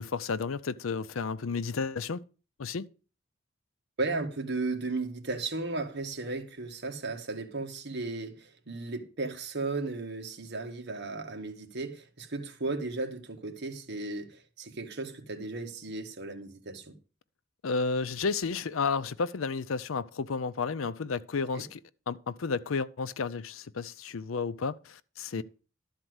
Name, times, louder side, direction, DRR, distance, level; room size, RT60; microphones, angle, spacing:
voice 1, 0.0-2.2 2.6-2.9 17.6-21.8 22.1-25.4, left 4 dB, 85° left, 0.6 m, -32 dB
voice 2, 4.0-17.0 21.5-21.6 25.3-25.4, right 3 dB, 60° right, 1.6 m, -35 dB
12.5 x 4.4 x 7.9 m
head